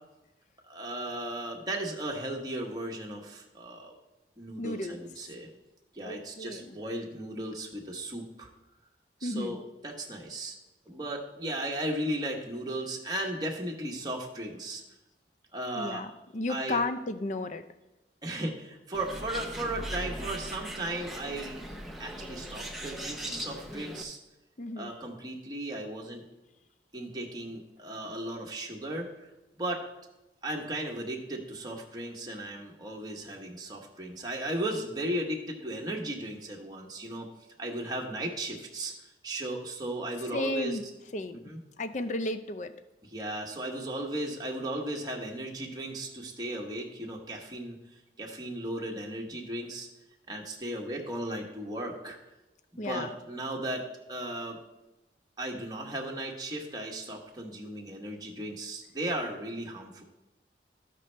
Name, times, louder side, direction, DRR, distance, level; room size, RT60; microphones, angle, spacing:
voice 1, 0.7-4.0 4.4-5.5 5.9-8.5 9.2-10.6 10.9-14.8 15.5-16.0 16.5-16.8 18.2-21.6 22.0-24.2 24.8-26.2 26.9-29.3 29.6-29.8 30.4-37.3 37.6-40.8 41.4-41.6 43.1-47.8 48.2-49.9 50.3-52.2 52.8-54.6 55.4-60.0, right 1 dB, 25° right, -1 dB, 1.1 m, -36 dB
voice 2, 4.6-5.0 6.0-6.8 9.2-9.6 15.7-17.6 24.6-24.9 40.3-40.8 41.1-41.4 41.8-42.7 52.8-53.1, left 2 dB, 45° left, 10 dB, 0.5 m, -33 dB
Bird, 18.9-24.0, equal, ahead, 0.8 m, -39 dB
14.0 x 5.3 x 3.3 m, 1.0 s
head